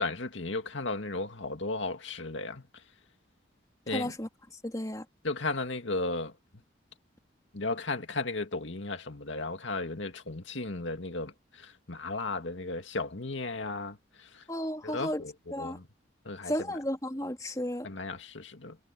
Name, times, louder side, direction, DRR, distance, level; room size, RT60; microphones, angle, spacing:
voice 1, 0.0-2.6 3.9-4.1 5.2-6.3 7.5-14.4 14.8-15.3 15.6-15.9 16.3-16.5 17.8-18.8, left 3 dB, 80° left, 2.2 m, -35 dB
voice 2, 3.9-4.3 4.6-5.0 14.5-15.2 15.5-15.8 16.4-17.9, equal, 20° left, 3.0 m, -33 dB
head